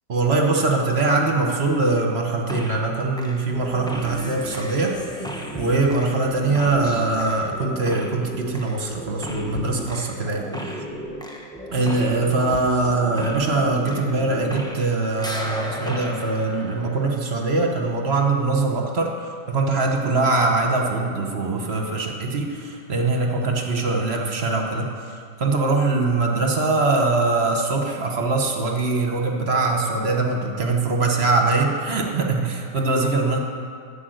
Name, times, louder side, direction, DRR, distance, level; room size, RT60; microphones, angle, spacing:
voice 1, 0.1-4.9 5.2-5.3 5.5-10.4 11.7-33.4, right 3 dB, 40° right, 2 dB, 1.2 m, -22 dB
sound 1, 2.5-2.9 3.2-14.9 15.2-17.4, equal, 5° left, 0.6 m, -34 dB
10.5 x 7.8 x 7.8 m, 2.2 s
omnidirectional pair, 1.9 m